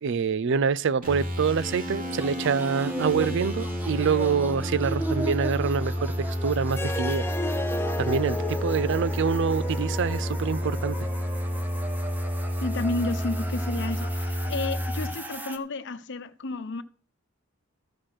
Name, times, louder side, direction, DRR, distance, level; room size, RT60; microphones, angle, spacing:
voice 1, 0.0-7.3 8.0-11.0, right 6 dB, 60° right, 0.4 m, -26 dB
sound 1, 1.0-15.1, equal, 40° right, 3.3 m, -30 dB
sound 2, 2.0-15.6, right 1 dB, 10° right, 1.2 m, -38 dB
Harp, 6.7-11.9, left 1 dB, 10° left, 0.8 m, -35 dB
voice 2, 12.6-16.8, left 3 dB, 60° left, 0.9 m, -31 dB
14.5 x 5.9 x 6.5 m
head